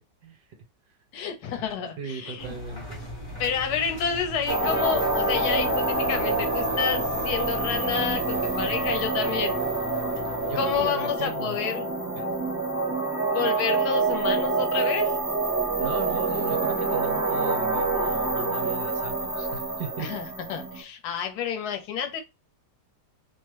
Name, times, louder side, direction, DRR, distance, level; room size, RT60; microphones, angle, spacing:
voice 1, 1.1-2.5 3.4-9.6 10.5-11.9 13.3-15.2 20.0-22.2, left 7 dB, 65° left, 1.1 m, -29 dB
voice 2, 2.0-3.0 10.5-11.5 13.8-13.9 15.7-20.1 21.0-21.2, right 6 dB, 70° right, 1.4 m, -36 dB
Engine, 2.4-10.9, equal, 20° left, 0.6 m, -40 dB
sound 1, 4.5-20.8, right 3 dB, 15° right, 0.7 m, -27 dB
3.0 x 2.1 x 3.1 m
omnidirectional pair, 1.9 m